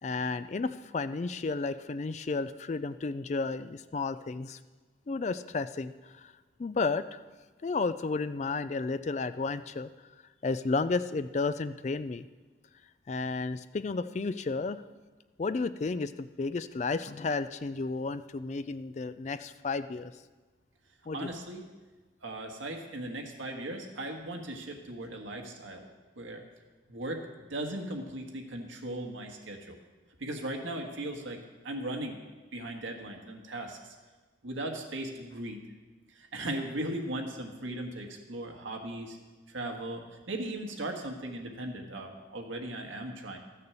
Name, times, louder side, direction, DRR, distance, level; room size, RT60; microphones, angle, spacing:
voice 1, 0.0-4.6 5.1-6.3 6.6-7.2 7.6-9.9 10.4-12.3 13.1-14.8 15.4-20.1 21.1-21.2, left 3 dB, 35° left, 13 dB, 0.3 m, -32 dB
voice 2, 21.1-21.7 22.2-25.9 26.2-26.4 26.9-27.2 27.5-29.8 30.2-32.2 32.5-34.0 34.4-35.7 36.2-39.2 39.5-43.4, right 1 dB, 90° right, 3 dB, 1.6 m, -38 dB
13.5 x 6.7 x 7.0 m, 1.3 s
head